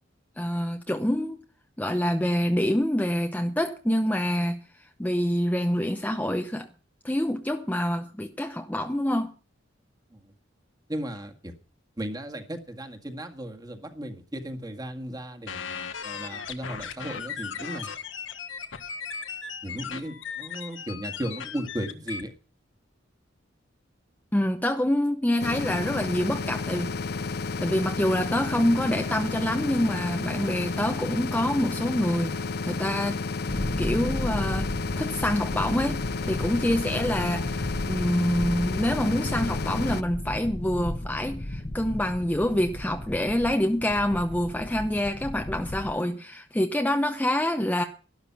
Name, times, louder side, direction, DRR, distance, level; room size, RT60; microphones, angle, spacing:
voice 1, 0.4-1.4 1.8-4.6 5.0-6.7 7.0-9.3 24.3-26.9 27.6-32.4 32.7-33.2 33.8-34.7 35.0-47.8, left 1 dB, 10° left, 0.8 m, -26 dB
voice 2, 10.9-11.3 12.0-15.6 16.0-17.9 19.6-22.3, right 1 dB, 20° right, 1.8 m, -35 dB
sound 1, 15.5-22.2, left 6 dB, 90° left, 1.5 m, -37 dB
sound 2, 25.4-40.0, left 4 dB, 55° left, 0.6 m, -32 dB
sound 3, 33.5-45.9, left 1 dB, 30° left, 1.0 m, -34 dB
12.0 x 12.0 x 5.7 m
head